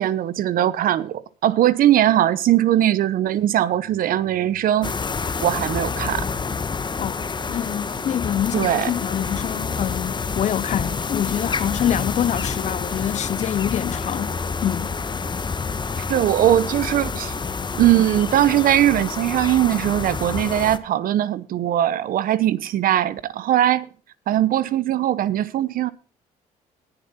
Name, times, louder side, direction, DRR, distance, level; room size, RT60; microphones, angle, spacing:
voice 1, 0.0-5.0 5.4-6.2 8.5-8.9 16.1-17.4 17.7-23.9 24.3-25.9, right 12 dB, 65° right, 0.9 m, -20 dB
sound 1, 3.3-18.2, right 4 dB, 45° right, 7.7 m, -47 dB
sound 2, 4.8-20.8, left 5 dB, 30° left, 1.2 m, -28 dB
voice 2, 7.5-15.0, left 10 dB, 50° left, 0.5 m, -26 dB
18.5 x 6.9 x 4.2 m
cardioid pair, 85°, 16 cm